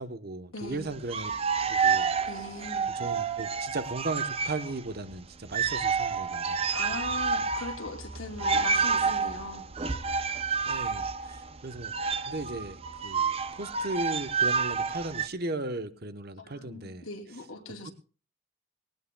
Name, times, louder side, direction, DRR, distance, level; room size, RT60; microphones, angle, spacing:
voice 1, 0.0-1.3 1.6-2.1 3.0-6.6 10.6-11.9 12.3-17.1 17.8-17.9, right 2 dB, 45° right, 10 dB, 0.9 m, -36 dB
voice 2, 0.5-0.9 2.3-2.9 6.7-9.7 16.4-17.9, left 3 dB, 85° left, 3 dB, 2.6 m, -39 dB
sound 1, 0.9-4.8 5.1-5.2 5.5-15.3, right 5 dB, 30° right, 0.5 m, -29 dB
19.0 x 18.5 x 2.3 m, 0.38 s
head